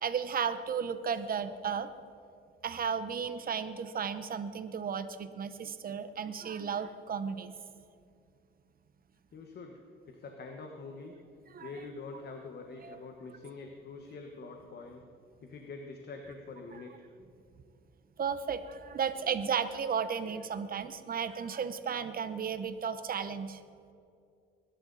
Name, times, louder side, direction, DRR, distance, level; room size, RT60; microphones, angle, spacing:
voice 1, 0.0-1.9 2.6-7.6 11.5-11.7 12.8-13.0 18.2-23.6, right 7 dB, 45° right, 11 dB, 1.0 m, -34 dB
voice 2, 9.3-9.8 10.1-11.1 11.6-15.0 15.4-16.9, left 3 dB, 55° left, 3 dB, 1.4 m, -45 dB
21.5 x 11.5 x 4.1 m, 2.5 s
cardioid pair, 90°, 20 cm